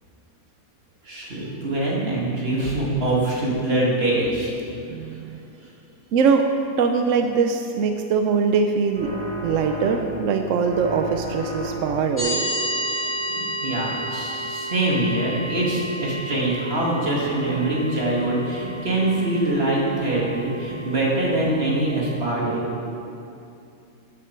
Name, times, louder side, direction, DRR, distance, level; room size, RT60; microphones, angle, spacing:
voice 1, 1.0-4.5 5.6-5.7 13.3-22.6, right 1 dB, 45° right, -4 dB, 2.4 m, -24 dB
voice 2, 4.9-5.4 6.1-6.5 6.8-9.1 9.4-12.5 22.4-22.8, right 5 dB, 70° right, 5 dB, 0.9 m, -22 dB
sound 1, 8.9-10.3 10.6-12.2, right 1 dB, 20° left, 3.0 m, -32 dB
sound 2, 12.2-22.2, right 1 dB, 45° left, 3.0 m, -32 dB
12.5 x 9.1 x 4.5 m, 2.6 s
omnidirectional pair, 1.5 m